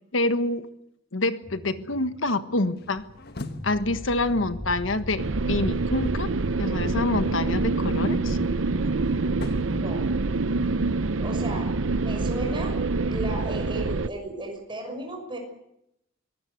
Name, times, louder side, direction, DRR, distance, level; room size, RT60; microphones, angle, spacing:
voice 1, 0.1-0.7 1.1-3.0 3.6-6.3 6.6-8.4, left 2 dB, 75° left, 10 dB, 1.5 m, -26 dB
sound 1, 1.4-9.9, left 1 dB, 20° left, 0.8 m, -38 dB
sound 2, 2.8-5.9 8.1-10.7, left 2 dB, 55° left, 1.5 m, -43 dB
sound 3, 5.2-14.1, right 3 dB, 85° right, 0.8 m, -26 dB
voice 2, 11.2-11.7 12.0-12.7 13.1-15.4, right 1 dB, 25° right, 3 dB, 6.2 m, -35 dB
24.0 x 18.0 x 7.9 m, 0.80 s
head